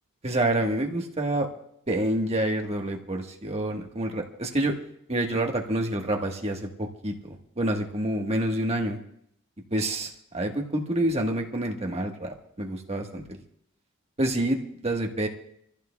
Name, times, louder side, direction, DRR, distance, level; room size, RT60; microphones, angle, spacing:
voice 1, 0.2-1.5 1.9-4.8 5.1-9.0 9.7-13.4 14.2-15.3, right 1 dB, 30° right, 2 dB, 1.4 m, -28 dB
27.5 x 15.0 x 2.3 m, 0.71 s
head